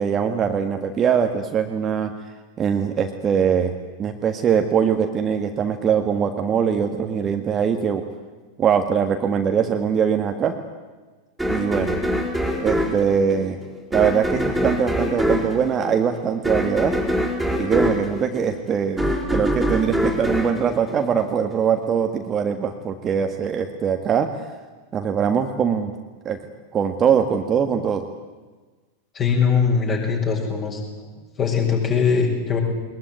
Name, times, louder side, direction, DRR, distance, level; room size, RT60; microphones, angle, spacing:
voice 1, 0.0-2.1 2.6-3.7 4.0-8.0 8.6-10.6 11.5-12.0 12.6-13.6 13.9-16.9 17.5-19.0 19.3-24.3 24.9-25.9 26.3-26.4 26.7-28.0, right 7 dB, 25° right, 6 dB, 1.7 m, -22 dB
sound 1, 11.4-21.6, equal, ahead, 4.4 m, -24 dB
voice 2, 29.1-30.8 31.4-32.6, left 6 dB, 25° left, 0 dB, 7.0 m, -21 dB
21.5 x 20.5 x 9.6 m, 1.3 s
figure-of-eight pair, 90°, 0 cm